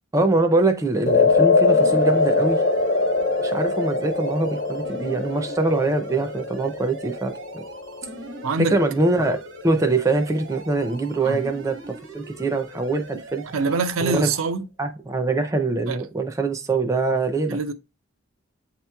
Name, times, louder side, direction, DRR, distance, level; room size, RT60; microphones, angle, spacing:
voice 1, 0.1-2.6 3.4-7.6 8.6-9.4 9.6-13.4 14.0-14.3 14.8-17.6, right 2 dB, 15° right, 0.4 m, -23 dB
sound 1, 1.1-9.4, left 3 dB, 55° left, 0.6 m, -23 dB
sound 2, 1.7-14.4, right 2 dB, 65° right, 0.9 m, -41 dB
voice 2, 8.4-8.8 11.2-11.4 13.5-14.7 15.9-16.0 17.5-17.7, right 4 dB, 90° right, 0.5 m, -24 dB
8.2 x 2.9 x 2.2 m
head